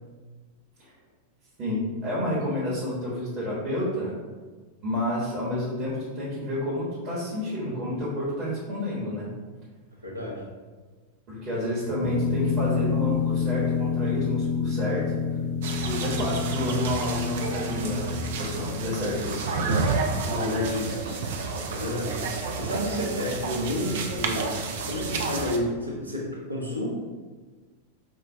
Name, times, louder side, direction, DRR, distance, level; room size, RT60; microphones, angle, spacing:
voice 1, 1.6-4.1 4.8-9.3 11.3-15.0 15.9-19.9 20.2-21.2, left 1 dB, 35° right, -8 dB, 1.0 m, -30 dB
voice 2, 10.0-10.4 20.4-20.6 21.7-22.2 22.5-24.5 24.8-26.9, equal, 85° right, -3 dB, 0.7 m, -30 dB
sound 1, 12.0-19.2, left 5 dB, 45° left, 0.5 m, -28 dB
sound 2, 15.6-25.6, right 4 dB, 55° right, 0.4 m, -30 dB
4.6 x 2.1 x 2.7 m, 1.4 s
figure-of-eight pair, 90°, 0 cm